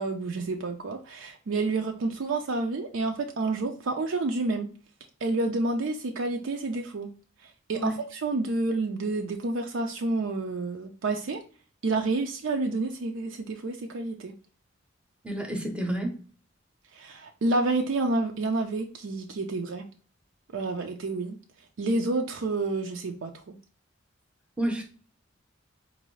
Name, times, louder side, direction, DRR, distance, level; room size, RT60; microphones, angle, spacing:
voice 1, 0.0-4.7 5.2-7.1 7.4-11.4 11.8-14.3 16.9-19.9 20.5-21.4 21.8-23.6, right 2 dB, 70° right, 3 dB, 0.5 m, -29 dB
voice 2, 15.2-16.1 24.6-24.8, right 1 dB, 5° right, 3 dB, 0.7 m, -29 dB
4.7 x 2.6 x 3.0 m, 0.39 s
head